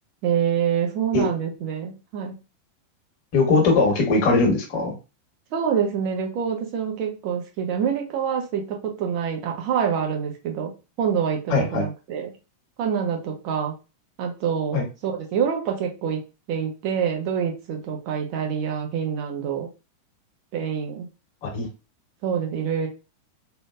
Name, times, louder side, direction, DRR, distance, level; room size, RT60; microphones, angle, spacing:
voice 1, 0.2-2.4 5.5-10.7 11.0-12.3 12.8-13.7 14.2-19.7 20.5-21.1 22.2-22.9, right 7 dB, 45° right, 2 dB, 0.8 m, -26 dB
voice 2, 3.3-4.9 11.5-11.8 14.7-14.8 21.4-21.7, left 3 dB, 45° left, 0 dB, 1.2 m, -20 dB
3.5 x 2.6 x 2.3 m, 0.30 s
figure-of-eight pair, 90°, 0 cm